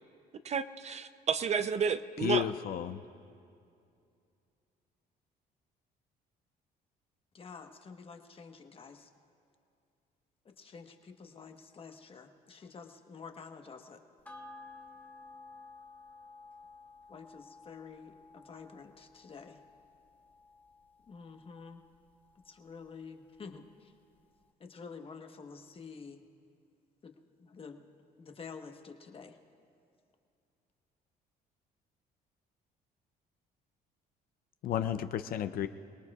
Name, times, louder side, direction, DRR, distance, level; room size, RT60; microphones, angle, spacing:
voice 1, 0.4-2.5, right 6 dB, 40° right, 12 dB, 0.5 m, -31 dB
voice 2, 2.2-3.0 34.6-35.7, left 10 dB, 60° left, 10 dB, 0.6 m, -32 dB
voice 3, 7.3-9.1 10.4-14.0 17.1-19.6 21.1-21.8 22.4-23.9 24.6-26.2 27.0-27.1 27.4-27.8 28.2-29.4, left 5 dB, 35° left, 5 dB, 1.2 m, -49 dB
sound 1, 14.3-23.0 23.4-23.5, left 3 dB, 10° left, 1.1 m, -54 dB
27.5 x 18.5 x 2.4 m, 2.5 s
cardioid pair, 110°, 17 cm